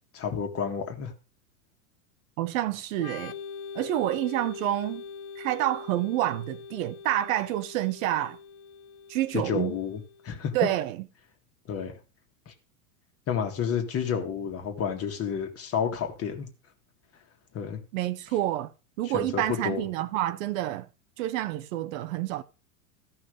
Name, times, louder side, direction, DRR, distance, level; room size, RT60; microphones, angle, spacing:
voice 1, 0.1-1.1 9.3-10.5 11.7-11.9 12.4-12.5 13.3-16.5 17.5-17.8 19.0-19.8, left 7 dB, 30° left, 1.8 m, -30 dB
voice 2, 2.4-3.3 3.7-5.0 5.4-8.4 9.1-9.8 10.5-11.0 17.9-18.7 19.0-20.9 21.2-22.4, right 14 dB, 60° right, 0.8 m, -28 dB
Organ, 3.0-10.5, left 6 dB, 50° left, 1.1 m, -43 dB
14.0 x 5.6 x 4.9 m
supercardioid pair, 135°, 46 cm